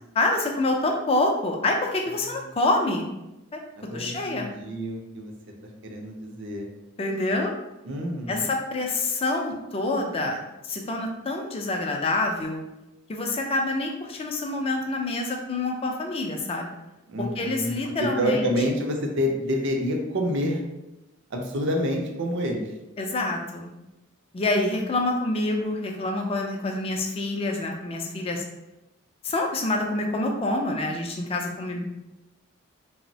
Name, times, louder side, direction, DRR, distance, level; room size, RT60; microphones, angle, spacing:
voice 1, 0.1-3.0 3.5-3.6 3.9-4.5 7.0-7.5 8.3-10.4 10.6-12.6 13.1-16.7 17.2-18.5 23.0-23.7 24.3-28.4 29.2-32.0, left 2 dB, 25° left, 2 dB, 0.3 m, -27 dB
voice 2, 3.8-5.3 5.8-6.7 7.8-8.5 17.1-17.7 18.0-20.6 21.3-22.7, equal, 60° right, 2 dB, 0.5 m, -28 dB
2.9 x 2.0 x 2.6 m, 0.95 s
head